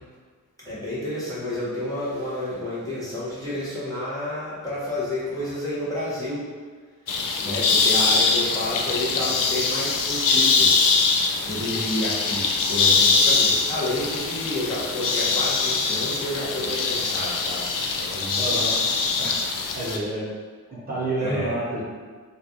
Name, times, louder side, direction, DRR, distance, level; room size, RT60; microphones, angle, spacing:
voice 1, 0.6-6.4 7.4-10.8 11.4-17.7 18.0-18.5 21.2-21.5, left 1 dB, 10° left, -10 dB, 0.8 m, -30 dB
sound 1, 7.1-20.0, left 4 dB, 80° left, 0.5 m, -23 dB
voice 2, 18.4-18.8 19.2-19.4 19.7-20.3 20.7-21.8, right 1 dB, 30° right, -8 dB, 0.8 m, -29 dB
3.2 x 2.4 x 3.7 m, 1.6 s
wide cardioid pair, 175°, 33 cm